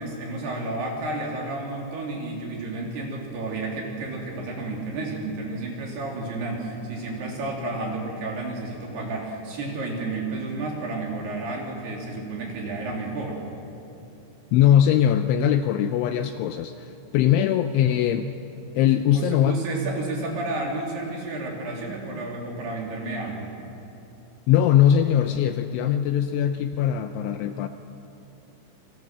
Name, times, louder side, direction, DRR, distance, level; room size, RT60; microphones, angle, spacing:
voice 1, 0.0-13.4 19.1-23.6, right 2 dB, 55° right, -1 dB, 4.9 m, -31 dB
voice 2, 14.5-16.9 17.1-18.3 18.8-19.6 24.5-27.7, left 10 dB, 80° left, 8 dB, 2.8 m, -21 dB
28.0 x 24.0 x 6.1 m, 2.8 s
omnidirectional pair, 6.0 m